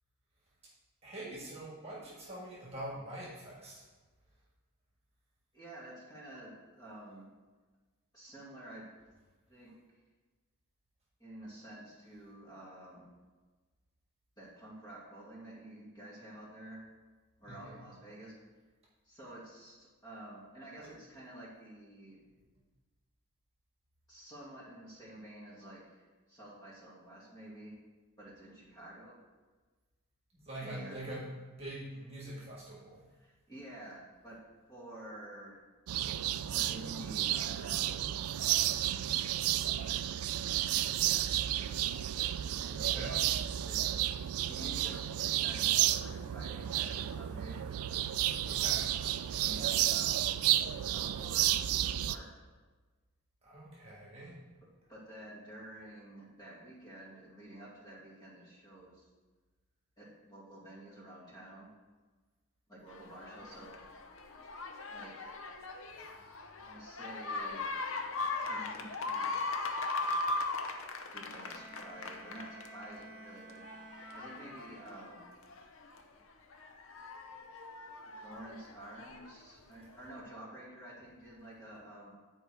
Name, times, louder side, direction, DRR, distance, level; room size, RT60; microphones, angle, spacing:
voice 1, 1.0-3.8 17.4-17.8 30.3-31.3 31.6-33.0 42.2-42.3 42.8-43.2 48.4-48.9 53.4-54.4 65.9-66.2, right 1 dB, 25° right, -5 dB, 1.7 m, -44 dB
voice 2, 5.5-7.3 8.1-8.9 9.5-9.8 11.2-13.1 14.4-16.8 17.4-18.3 19.0-22.2 24.1-27.8 28.2-29.2 30.6-31.1 33.2-34.4 34.7-35.6 36.4-38.7 39.8-40.0 40.4-41.4 42.6-43.3 43.6-43.9 44.5-47.7 49.4-50.4 50.8-52.4 54.9-59.0 60.0-61.7 62.7-63.8 64.9-65.3 66.6-67.7 68.4-69.3 71.1-73.6 74.1-75.2 78.2-82.1, right 1 dB, 20° left, -6 dB, 2.2 m, -50 dB
sound 1, 35.9-52.2, right 12 dB, 75° right, 0.3 m, -32 dB
sound 2, 62.9-73.1 73.5-76.0 76.5-79.3 80.2-80.3, left 3 dB, 60° left, 0.7 m, -39 dB
Bowed string instrument, 71.3-75.1, right 2 dB, 45° right, 1.1 m, -53 dB
9.9 x 4.5 x 4.6 m, 1.3 s
head